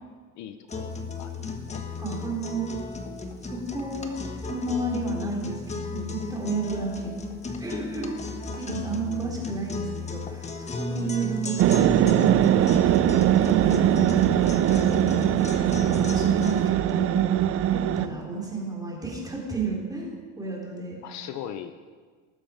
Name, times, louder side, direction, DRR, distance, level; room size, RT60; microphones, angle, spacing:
voice 1, 0.4-1.4 1.7-1.8 11.2-11.3 21.0-21.7, left 10 dB, 65° left, 9 dB, 0.9 m, -39 dB
sound 1, 0.7-16.7, left 3 dB, 20° left, 1.3 m, -34 dB
voice 2, 2.0-2.7 3.4-4.1 4.5-7.1 7.6-8.2 8.6-13.1 13.4-14.6 14.9-21.0, right 4 dB, 10° right, -3 dB, 3.8 m, -32 dB
sound 2, 11.6-18.1, right 11 dB, 45° right, 0.5 m, -21 dB
19.0 x 7.2 x 5.1 m, 1.5 s
cardioid pair, 115°, 31 cm